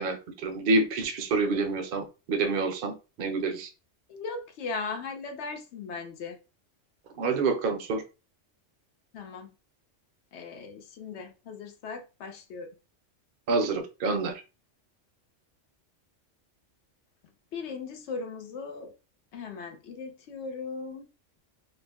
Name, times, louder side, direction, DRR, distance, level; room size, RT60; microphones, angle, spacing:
voice 1, 0.0-3.7 7.2-8.0 13.5-14.4, right 3 dB, 60° right, 0.6 m, -27 dB
voice 2, 4.1-6.4 9.1-9.5 10.3-12.7 17.5-18.9 19.3-21.1, left 4 dB, 70° left, 0.8 m, -38 dB
2.4 x 2.0 x 3.3 m
omnidirectional pair, 1.2 m